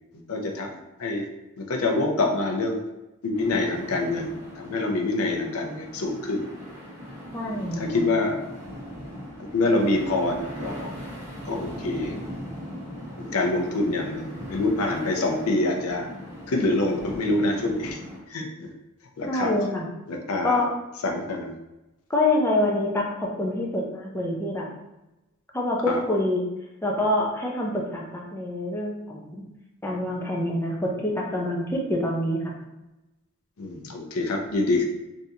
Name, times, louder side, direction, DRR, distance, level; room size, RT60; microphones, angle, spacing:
voice 1, 0.3-0.7 1.0-1.3 1.6-2.8 3.2-4.3 4.6-6.5 7.5-8.4 9.5-10.9 11.4-12.1 13.2-16.1 16.5-18.0 18.3-18.7 19.2-19.6 20.1-20.6 21.0-21.5 25.9-26.0 33.6-34.8, left 2 dB, 75° left, 2 dB, 0.6 m, -26 dB
sound 1, 3.3-18.2, equal, 10° right, 0.9 m, -39 dB
voice 2, 7.3-8.0 19.3-19.9 20.4-20.7 22.1-24.7 25.5-26.5 26.8-29.4 29.8-32.5, left 1 dB, 10° left, -2 dB, 0.5 m, -26 dB
3.5 x 2.7 x 2.8 m, 0.99 s
head